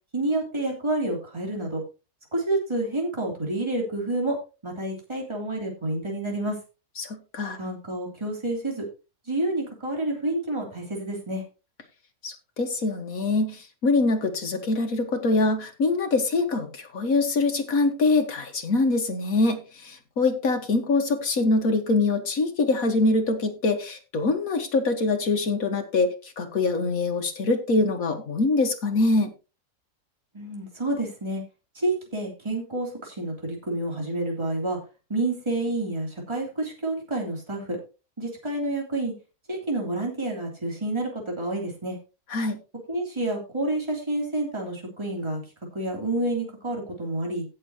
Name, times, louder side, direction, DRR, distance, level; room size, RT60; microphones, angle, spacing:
voice 1, 0.1-1.8 2.3-4.4 4.6-6.5 7.6-8.9 9.3-11.4 30.3-31.4 31.7-34.8 35.1-37.8 38.2-39.1 39.5-42.0 42.9-45.4 45.7-47.4, right 2 dB, 15° right, -1 dB, 3.1 m, -29 dB
voice 2, 7.0-7.6 12.2-29.3 42.3-42.6, left 3 dB, 60° left, 5 dB, 1.9 m, -24 dB
17.5 x 6.6 x 2.9 m, 0.30 s
omnidirectional pair, 1.6 m